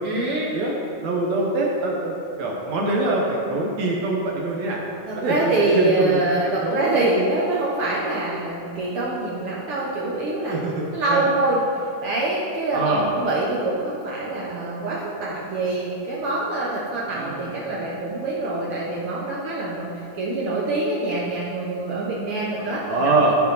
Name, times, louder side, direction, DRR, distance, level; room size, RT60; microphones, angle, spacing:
voice 1, 0.0-0.5 5.1-10.6 10.9-11.6 12.0-23.1, right 2 dB, 90° right, -5 dB, 1.2 m, -25 dB
voice 2, 1.0-4.8 5.1-6.9 10.5-11.3 12.7-13.1 17.1-17.8 22.8-23.4, right 2 dB, 70° right, -2 dB, 1.9 m, -24 dB
13.0 x 4.6 x 4.0 m, 2.7 s
omnidirectional pair, 3.8 m